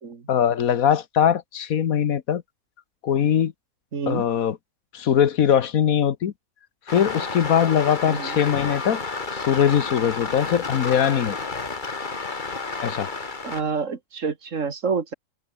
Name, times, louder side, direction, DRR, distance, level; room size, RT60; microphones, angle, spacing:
voice 1, 0.3-2.4 3.0-3.5 4.1-4.6 4.9-6.3 6.9-9.0 9.3-11.4 12.8-13.1, left 9 dB, 80° left, 1.5 m, -21 dB
voice 2, 3.9-4.2 8.0-8.4 13.4-15.1, right 5 dB, 60° right, 2.2 m, -28 dB
sound 1, 6.9-13.6, left 3 dB, 35° left, 1.9 m, -31 dB
omnidirectional pair, 1.5 m